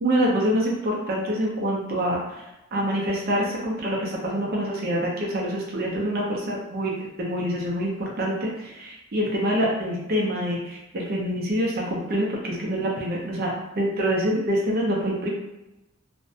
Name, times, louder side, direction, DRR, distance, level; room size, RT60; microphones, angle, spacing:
voice 1, 0.0-2.2 2.7-6.9 7.2-15.3, equal, 50° right, -2 dB, 0.5 m, -26 dB
2.5 x 2.1 x 2.6 m, 0.95 s
head